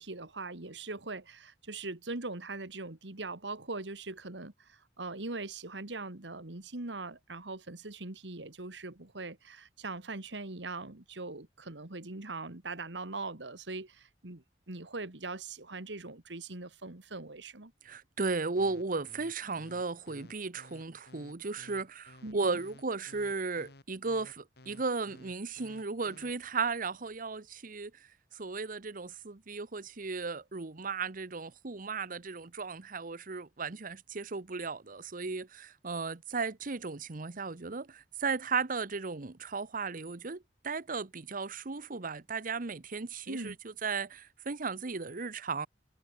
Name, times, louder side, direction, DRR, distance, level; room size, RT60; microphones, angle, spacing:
voice 1, 0.0-17.7 22.2-22.6 43.3-43.6, right 3 dB, 85° right, 2.2 m, -41 dB
voice 2, 17.8-28.1 28.3-45.7, right 4 dB, 50° right, 1.0 m, -35 dB
sound 1, 18.6-26.3, left 2 dB, 65° left, 2.6 m, -55 dB
head